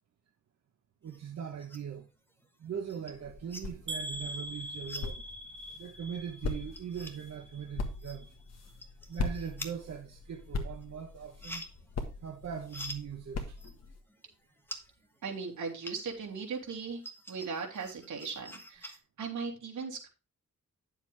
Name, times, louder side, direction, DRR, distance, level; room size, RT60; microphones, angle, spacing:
voice 1, 1.0-2.1 2.6-5.2 5.7-8.3 9.1-11.6 12.2-13.6, right 8 dB, 60° right, 1.1 m, -40 dB
sound 1, 1.1-2.0 2.4-16.3 16.6-19.0, left 1 dB, 5° left, 1.4 m, -48 dB
sound 2, 3.1-14.0, left 3 dB, 60° left, 1.6 m, -41 dB
sound 3, 3.9-7.8 8.1-8.8 9.2-9.4 9.7-9.8, equal, 40° right, 1.3 m, -43 dB
voice 2, 15.2-17.0 17.3-20.1, right 5 dB, 80° right, 3.0 m, -38 dB
10.0 x 7.0 x 3.4 m
wide cardioid pair, 150°, 30 cm